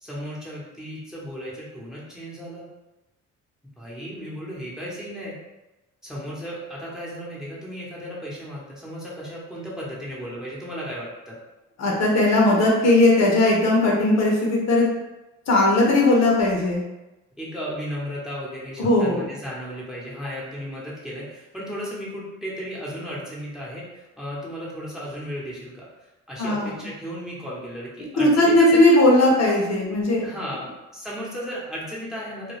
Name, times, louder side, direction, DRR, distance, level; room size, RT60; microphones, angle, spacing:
voice 1, 0.0-2.6 3.8-5.3 6.0-11.4 17.4-25.9 26.3-29.0 30.2-32.6, equal, ahead, -6 dB, 0.9 m, -35 dB
voice 2, 11.8-14.9 15.5-16.8 18.8-19.2 26.4-26.8 28.2-30.2, left 2 dB, 60° left, -2 dB, 0.7 m, -18 dB
2.3 x 2.2 x 3.2 m, 1.0 s
cardioid pair, 90°, 30 cm